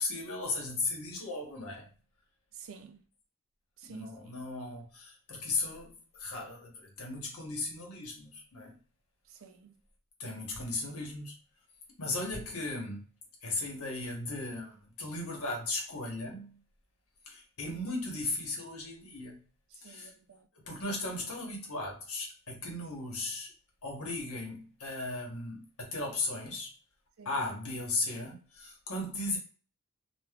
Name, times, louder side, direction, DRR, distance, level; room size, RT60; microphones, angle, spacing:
voice 1, 0.0-1.9 3.8-8.7 10.2-11.3 12.0-13.0 13.4-16.6 17.3-19.4 19.8-20.1 20.6-23.5 23.8-26.7 27.2-29.4, left 2 dB, 90° left, 1.1 m, -36 dB
voice 2, 2.5-3.0 3.8-4.1 9.3-9.8 19.7-20.5 27.2-27.3, right 6 dB, 70° right, 0.4 m, -50 dB
3.4 x 2.3 x 2.3 m
head